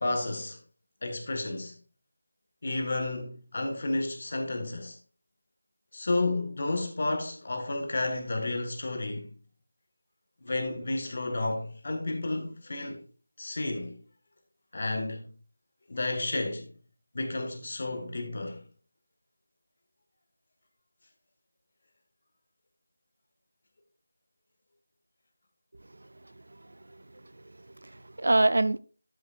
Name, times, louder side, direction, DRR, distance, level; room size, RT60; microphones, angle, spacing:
voice 1, 0.0-0.6 1.0-1.8 2.6-5.0 5.9-9.3 10.4-13.0 13.4-14.0 14.7-15.3 15.9-16.7 17.1-18.6, left 2 dB, 35° left, 1.4 m, -31 dB
voice 2, 25.9-28.8, right 2 dB, 55° right, 0.5 m, -29 dB
13.0 x 6.2 x 2.4 m
figure-of-eight pair, 175°, 0 cm